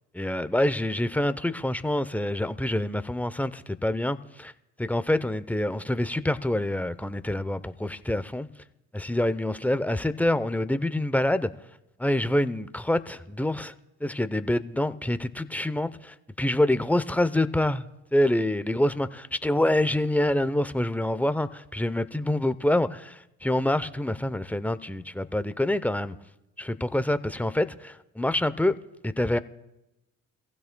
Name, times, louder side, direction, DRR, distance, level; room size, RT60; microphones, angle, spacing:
voice 1, 0.1-4.5 4.8-8.5 8.9-11.5 12.0-13.7 14.0-26.2 26.6-28.8 29.0-29.4, left 1 dB, 5° left, 0.7 m, -26 dB
25.5 x 15.5 x 2.3 m
supercardioid pair, 65°, 34 cm